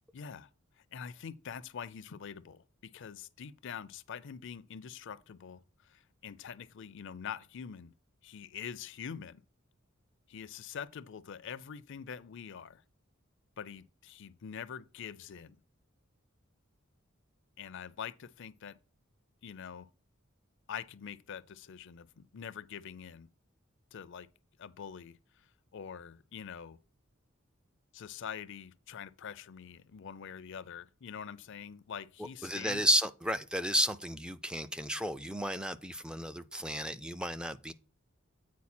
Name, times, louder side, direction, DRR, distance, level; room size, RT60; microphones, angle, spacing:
voice 1, 0.1-0.5 0.9-7.9 8.2-9.4 10.3-12.8 13.6-15.6 17.6-18.8 19.4-19.9 20.7-23.3 23.9-24.3 24.6-25.2 25.7-26.8 27.9-32.9, left 7 dB, 65° left, 0.5 m, -45 dB
voice 2, 32.4-37.7, equal, 5° right, 0.3 m, -32 dB
8.4 x 4.4 x 4.3 m
head